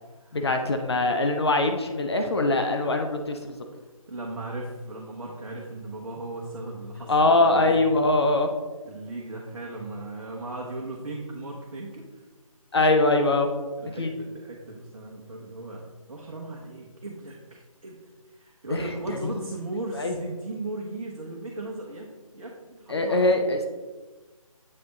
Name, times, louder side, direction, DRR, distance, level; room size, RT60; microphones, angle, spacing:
voice 1, 0.3-3.5 7.1-8.5 12.7-13.5 14.0-14.1 18.7-18.8 19.1-19.2 20.0-20.1 22.9-23.7, left 2 dB, 45° left, 5 dB, 0.6 m, -22 dB
voice 2, 4.1-7.8 8.9-12.2 13.8-18.0 18.3-23.4, right 2 dB, 60° right, -2 dB, 1.0 m, -37 dB
7.7 x 3.5 x 3.9 m, 1.3 s
figure-of-eight pair, 155°, 18 cm